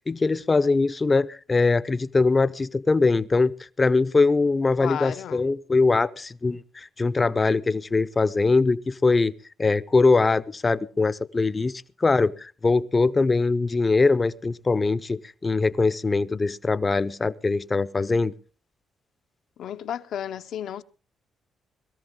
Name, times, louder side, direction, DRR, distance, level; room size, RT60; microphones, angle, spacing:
voice 1, 0.1-3.5 3.8-9.3 9.6-18.3, left 3 dB, 25° left, 0.6 m, -22 dB
voice 2, 4.8-5.5 19.6-20.8, left 9 dB, 70° left, 0.8 m, -33 dB
21.0 x 13.5 x 3.7 m
cardioid pair, 90°, 0 cm